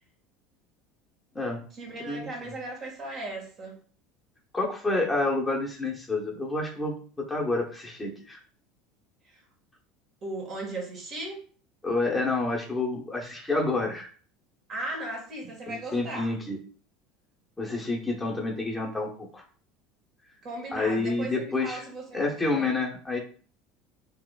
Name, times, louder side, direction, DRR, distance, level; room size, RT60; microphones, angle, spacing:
voice 1, 1.7-3.8 9.2-9.4 10.2-11.4 14.7-16.3 20.4-22.7, right 2 dB, 45° right, -1 dB, 1.7 m, -37 dB
voice 2, 4.5-8.4 11.8-14.1 15.7-16.6 17.6-19.4 20.7-21.9 22.1-23.2, left 2 dB, 15° left, -1 dB, 0.9 m, -29 dB
3.8 x 2.9 x 2.4 m, 0.42 s
hypercardioid pair, 80°, 0 cm